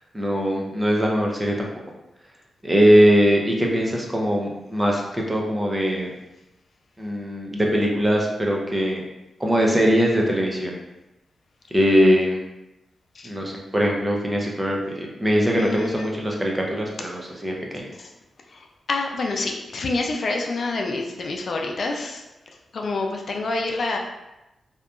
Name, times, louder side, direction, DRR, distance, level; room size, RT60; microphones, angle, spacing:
voice 1, 0.1-1.7 2.6-6.1 7.0-9.0 9.4-10.7 11.7-12.4 13.2-17.8, equal, 20° right, -1 dB, 0.6 m, -21 dB
voice 2, 15.6-16.1 18.5-18.6 18.9-22.2 22.7-24.0, left 3 dB, 65° left, 2 dB, 0.3 m, -27 dB
2.7 x 2.2 x 2.3 m, 0.95 s
supercardioid pair, 45°, 0 cm